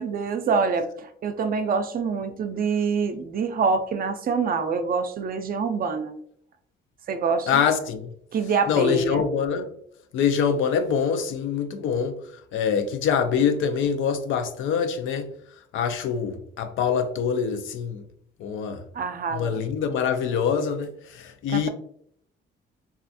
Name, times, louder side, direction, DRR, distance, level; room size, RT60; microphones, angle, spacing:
voice 1, 0.0-6.2 7.1-7.6 8.3-9.2 18.9-19.6 21.5-21.7, right 5 dB, 50° right, 0.4 m, -26 dB
voice 2, 7.5-8.1 8.7-9.7 10.1-12.2 12.5-15.3 15.7-18.0 18.4-18.8 19.3-21.7, left 7 dB, 80° left, 0.5 m, -24 dB
3.3 x 2.4 x 2.6 m
cardioid pair, 90°, 20 cm